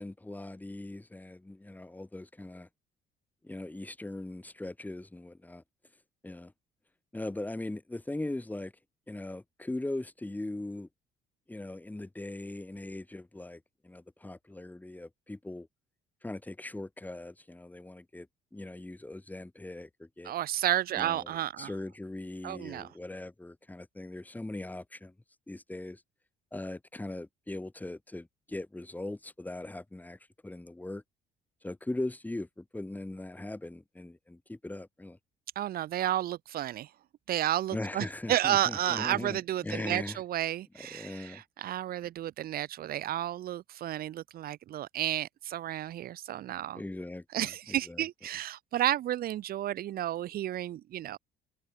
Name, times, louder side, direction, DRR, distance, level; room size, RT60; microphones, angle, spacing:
voice 1, 0.0-2.7 3.4-5.6 6.2-6.5 7.1-8.7 9.1-10.9 11.5-15.7 16.2-18.3 18.5-20.3 21.0-25.1 25.5-26.0 26.5-31.0 31.6-35.2 37.7-40.2 40.7-41.4 46.7-48.1, left 2 dB, 10° left, 6.5 m, -40 dB
voice 2, 20.2-21.7 22.4-22.9 35.5-36.9 37.3-46.8 47.3-51.2, right 12 dB, 60° right, 1.3 m, -32 dB
cardioid pair, 110°, 17 cm